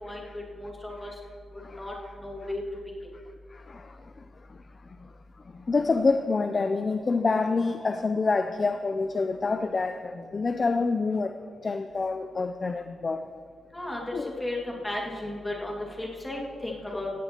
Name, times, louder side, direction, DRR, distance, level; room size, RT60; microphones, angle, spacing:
voice 1, 0.0-1.1 1.7-2.6 13.7-14.0 14.4-17.1, left 1 dB, 10° left, -2 dB, 2.0 m, -35 dB
voice 2, 3.5-4.2 4.5-4.6 5.0-5.1 5.5-11.4 11.6-13.3 14.1-14.3, left 4 dB, 25° left, 8 dB, 0.4 m, -27 dB
16.5 x 15.5 x 2.9 m, 2.2 s
wide cardioid pair, 170°, 0 cm